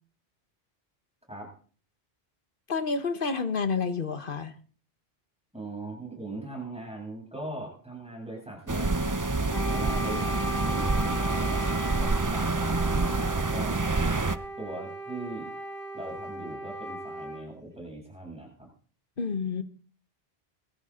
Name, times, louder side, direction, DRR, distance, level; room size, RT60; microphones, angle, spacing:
voice 1, 2.7-4.5 19.2-19.6, left 5 dB, 55° left, 10 dB, 1.4 m, -29 dB
voice 2, 5.5-9.2 9.7-11.6 12.0-13.1 13.5-13.8 14.6-15.5 15.9-18.7, right 2 dB, 5° right, -2 dB, 7.8 m, -40 dB
sound 1, 8.7-14.4, right 3 dB, 20° right, 0.6 m, -27 dB
Wind instrument woodwind instrument, 9.5-17.5, right 1 dB, 55° right, 2.8 m, -37 dB
21.0 x 14.0 x 3.9 m, 0.42 s
omnidirectional pair, 1.1 m